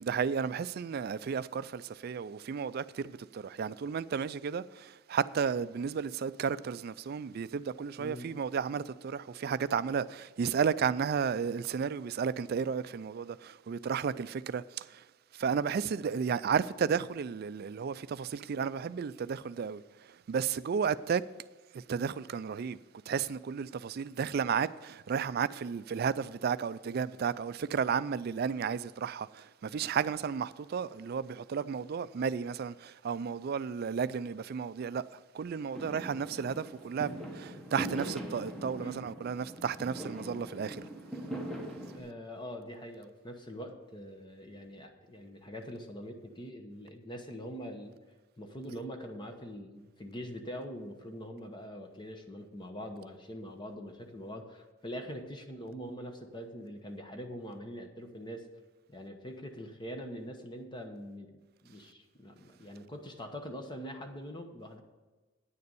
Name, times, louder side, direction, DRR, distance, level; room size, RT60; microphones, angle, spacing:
voice 1, 0.0-15.0 15.3-19.8 20.3-21.2 21.7-22.8 23.1-35.0 35.3-40.8, right 6 dB, 50° right, 0.3 m, -33 dB
voice 2, 8.0-8.3 38.8-39.0 41.9-48.0 48.4-58.4 58.9-61.3 61.6-64.8, equal, 25° left, 1.1 m, -43 dB
Fireworks, 35.7-42.0, right 1 dB, ahead, 1.2 m, -41 dB
9.5 x 6.7 x 7.0 m
head